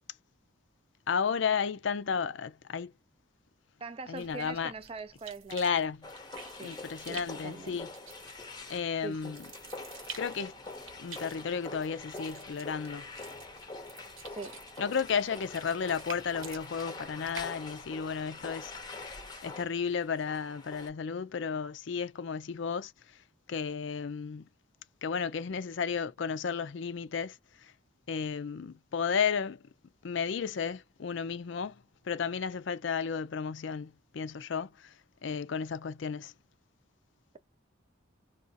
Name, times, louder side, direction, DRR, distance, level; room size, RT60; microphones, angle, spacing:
voice 1, 1.1-2.9 4.1-4.7 5.5-6.1 6.6-7.9 8.7-9.5 10.2-10.6 11.0-13.1 14.8-23.2 23.5-24.5 25.0-27.7 28.1-29.6 30.0-36.3, left 6 dB, 60° left, 0.4 m, -33 dB
voice 2, 3.8-5.8 6.6-6.8 7.1-7.8 9.0-9.3 14.4-14.6, right 4 dB, 25° right, 0.4 m, -42 dB
sound 1, 4.2-19.0, right 6 dB, 80° right, 1.1 m, -51 dB
sound 2, 6.0-20.9, left 3 dB, 20° left, 0.7 m, -45 dB
2.5 x 2.4 x 3.9 m
head